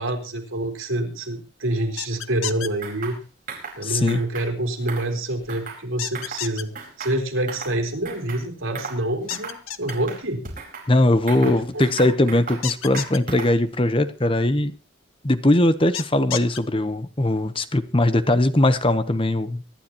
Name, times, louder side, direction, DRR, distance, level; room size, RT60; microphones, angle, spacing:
voice 1, 0.0-3.2 3.8-6.7 7.0-10.4 11.4-12.1, right 1 dB, 85° right, 3.8 m, -27 dB
sound 1, 2.0-2.7 6.0-6.6 9.3-9.9 12.6-13.2 15.9-16.6, left 10 dB, 85° left, 1.0 m, -30 dB
sound 2, 2.8-3.2 3.5-3.8 4.1-4.5 4.8-5.8 6.1-6.5 6.8-7.8 8.0-8.4 8.7-9.0 9.3-9.6 9.9-10.9 11.3-12.6 12.9-13.6, right 5 dB, 40° right, 4.7 m, -36 dB
voice 2, 3.8-4.2 10.9-14.7 15.2-19.6, left 1 dB, 25° left, 0.9 m, -20 dB
24.5 x 11.5 x 3.0 m
head